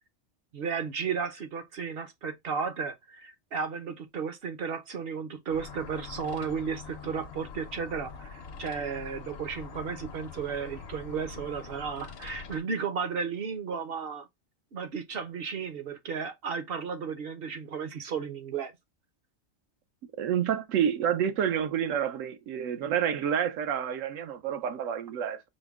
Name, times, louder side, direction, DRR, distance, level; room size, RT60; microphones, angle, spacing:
voice 1, 0.5-14.3 14.7-18.7, right 6 dB, 55° right, 0.8 m, -34 dB
sound 1, 5.5-12.6, left 6 dB, 60° left, 0.8 m, -44 dB
voice 2, 20.2-25.4, right 9 dB, 80° right, 1.0 m, -29 dB
5.1 x 2.1 x 3.4 m
omnidirectional pair, 1.3 m